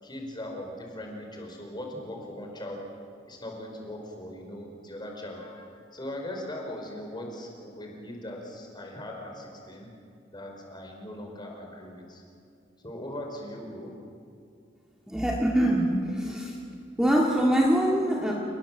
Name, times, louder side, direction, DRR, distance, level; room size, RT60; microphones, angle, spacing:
voice 1, 0.0-2.8 3.3-9.9 10.3-12.2 12.8-13.9, left 1 dB, 25° left, 1 dB, 4.9 m, -39 dB
voice 2, 15.1-16.6 17.0-18.3, equal, 5° right, -3 dB, 2.4 m, -24 dB
29.5 x 20.0 x 7.5 m, 2.4 s
head